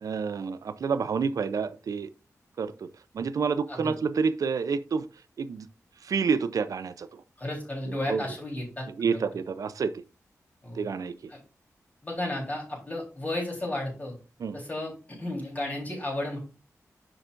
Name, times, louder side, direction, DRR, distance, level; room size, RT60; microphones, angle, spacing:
voice 1, 0.0-2.1 2.6-2.9 3.1-5.1 5.4-5.7 6.0-7.2 7.9-8.3 9.0-10.0 10.8-11.3 14.4-14.6, right 5 dB, 80° right, 0.6 m, -29 dB
voice 2, 7.4-9.2 10.6-10.9 12.0-14.1 14.5-16.4, left 1 dB, 30° left, 3.9 m, -33 dB
9.9 x 5.9 x 2.6 m
wide cardioid pair, 150°, 6 cm